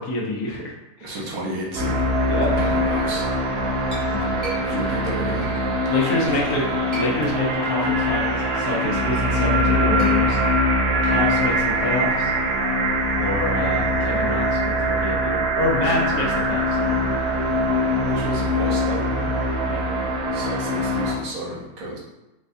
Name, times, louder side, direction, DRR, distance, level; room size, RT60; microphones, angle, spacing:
voice 1, 0.0-1.2 2.3-2.7 4.1-4.3 5.9-6.7 6.9-10.4 11.0-12.3 13.1-17.0 19.6-19.9, left 2 dB, 80° left, -2 dB, 1.3 m, -27 dB
voice 2, 1.0-2.1 2.6-3.2 4.6-5.5 5.8-6.8 15.8-16.0 18.1-19.3 20.3-22.0, right 1 dB, 70° right, -3 dB, 1.2 m, -32 dB
sound 1, 1.8-21.1, equal, 85° right, 1.2 m, -22 dB
Chink clink, 3.5-6.2 6.7-7.7 8.1-12.1, right 2 dB, 25° right, 0.7 m, -39 dB
4.5 x 2.2 x 2.5 m, 0.97 s
omnidirectional pair, 1.6 m